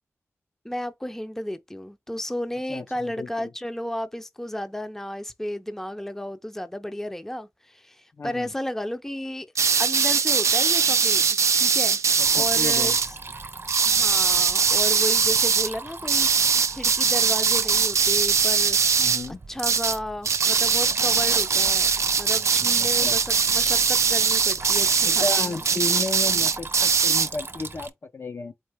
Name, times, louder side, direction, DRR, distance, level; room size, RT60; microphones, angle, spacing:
voice 1, 0.6-9.5 9.8-12.0 12.3-13.1 13.8-18.8 19.5-21.9 22.2-25.5, left 1 dB, 10° left, 0.5 m, -33 dB
voice 2, 2.7-3.5 8.2-8.5 12.2-13.0 19.0-19.4 23.0-23.2 25.0-28.5, left 3 dB, 55° left, 0.5 m, -33 dB
sound 1, 9.5-13.1 13.7-15.7 16.1-19.3 19.6-20.0 20.2-27.3, right 6 dB, 80° right, 0.3 m, -21 dB
Water tap faucet / Trickle dribble, 12.2-27.9, right 3 dB, 55° right, 0.8 m, -38 dB
4.5 x 2.8 x 3.3 m
wide cardioid pair, 70°, 5 cm